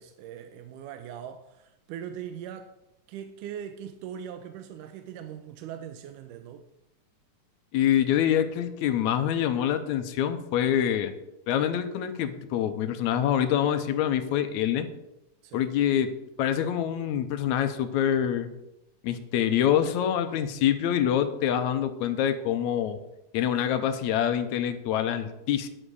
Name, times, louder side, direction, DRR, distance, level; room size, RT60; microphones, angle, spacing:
voice 1, 0.0-2.7 3.1-6.7 15.4-15.7, right 9 dB, 90° right, 2.2 m, -40 dB
voice 2, 7.7-11.1 11.5-14.9 15.5-16.1 16.4-18.5 19.0-23.0 23.3-25.7, left 10 dB, 75° left, 1.9 m, -25 dB
9.9 x 7.6 x 4.8 m
omnidirectional pair, 3.7 m